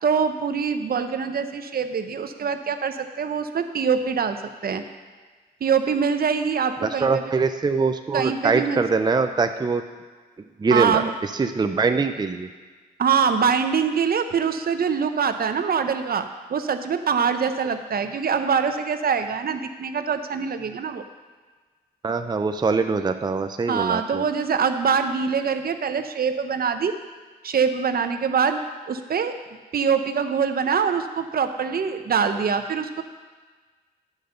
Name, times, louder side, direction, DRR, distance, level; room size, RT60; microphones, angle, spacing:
voice 1, 0.0-4.8 5.6-7.3 8.1-8.9 10.7-11.1 13.0-21.0 23.7-27.0 27.4-28.6 28.9-29.4 29.7-33.0, right 6 dB, 60° right, 8 dB, 0.7 m, -24 dB
voice 2, 6.8-9.8 10.6-11.0 11.4-12.5 22.0-24.2, right 4 dB, 25° right, 8 dB, 0.5 m, -23 dB
10.0 x 5.2 x 6.7 m, 1.4 s
cardioid pair, 75°, 17 cm